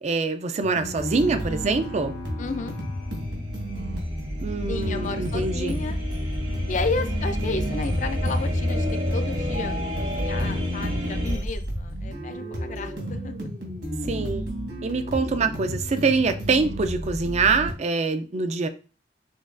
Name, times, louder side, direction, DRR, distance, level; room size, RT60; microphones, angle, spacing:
voice 1, 0.0-2.1 4.4-5.8 14.0-14.4 14.8-18.7, right 4 dB, 40° right, 0.4 m, -24 dB
sound 1, 0.6-17.7, equal, 70° right, 1.5 m, -32 dB
Bowed string instrument, 0.7-4.5, left 3 dB, 80° left, 1.2 m, -46 dB
voice 2, 2.4-2.7 4.7-6.0 6.7-8.9 9.1-13.3, left 4 dB, 45° left, 0.4 m, -32 dB
sound 2, 2.6-11.4, equal, 90° right, 2.2 m, -29 dB
6.2 x 2.3 x 2.5 m
head